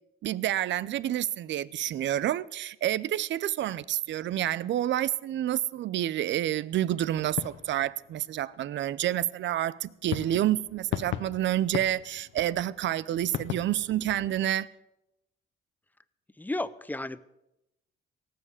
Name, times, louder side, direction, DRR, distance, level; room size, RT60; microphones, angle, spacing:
voice 1, 0.2-14.7, right 12 dB, 65° right, 0.6 m, -29 dB
sound 1, 7.2-8.6 10.1-14.5, left 12 dB, 75° left, 0.6 m, -38 dB
voice 2, 16.4-17.2, left 2 dB, 10° left, 0.7 m, -33 dB
18.0 x 7.7 x 8.1 m
cardioid pair, 90°, 20 cm